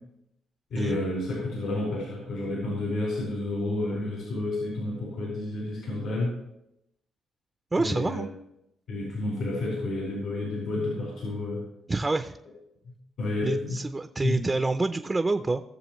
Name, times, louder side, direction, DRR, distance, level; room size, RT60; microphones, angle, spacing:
voice 1, 0.7-6.3 7.8-8.2 8.9-11.6 13.2-13.8 14.2-14.4, left 2 dB, 75° left, -5 dB, 4.5 m, -30 dB
voice 2, 7.7-8.3 11.9-12.4 13.4-15.6, right 3 dB, 20° right, 8 dB, 0.5 m, -27 dB
17.5 x 6.9 x 3.1 m, 0.83 s
cardioid pair, 90°, 0 cm